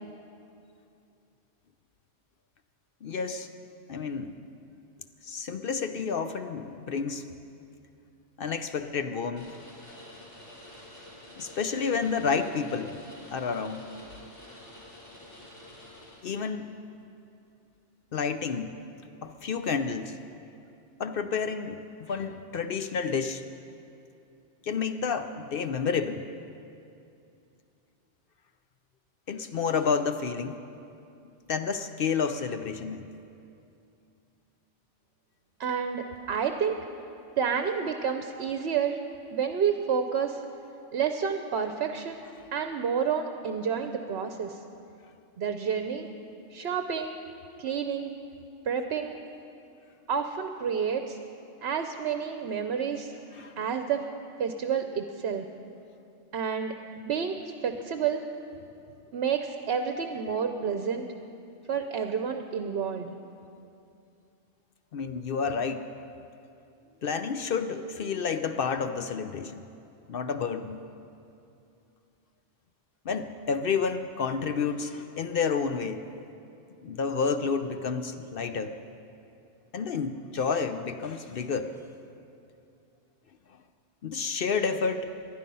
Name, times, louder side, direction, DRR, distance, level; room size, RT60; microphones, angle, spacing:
voice 1, 3.0-3.5 3.9-4.4 5.2-7.3 8.4-9.5 11.4-13.0 13.3-14.2 16.2-16.7 18.1-18.7 19.2-20.1 21.0-23.4 24.6-26.3 29.3-30.6 31.5-33.1 53.3-53.5 64.9-65.9 67.0-69.7 70.1-70.8 73.1-76.0 76.8-78.7 79.7-81.8 84.0-85.1, left 5 dB, 60° left, 9 dB, 0.7 m, -30 dB
sound 1, 9.4-16.6, left 1 dB, 80° left, 3.8 m, -49 dB
voice 2, 35.6-36.8 37.4-39.0 39.3-40.4 40.9-42.2 42.5-44.6 45.4-46.1 46.5-47.2 47.6-48.1 48.6-49.1 50.1-51.2 51.6-53.1 53.6-54.0 54.4-55.5 56.3-58.2 59.1-61.1 61.7-63.1, right 7 dB, 65° right, 7 dB, 0.9 m, -29 dB
19.5 x 11.5 x 5.5 m, 2.6 s
omnidirectional pair, 1.2 m